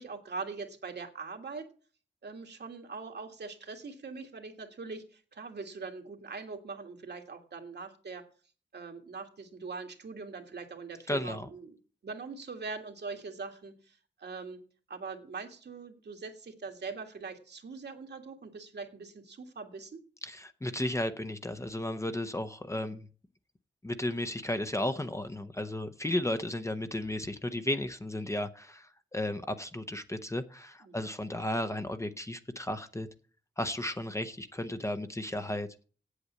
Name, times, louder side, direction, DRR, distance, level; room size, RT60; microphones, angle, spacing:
voice 1, 0.0-1.7 2.2-8.2 8.7-11.8 12.0-14.6 14.9-20.0 30.8-31.0 34.7-34.8, right 4 dB, 65° right, 1.8 m, -42 dB
voice 2, 11.1-11.5 20.2-23.1 23.8-33.1 33.6-35.7, left 1 dB, 15° left, 0.7 m, -34 dB
8.7 x 8.1 x 8.3 m
wide cardioid pair, 145°, 19 cm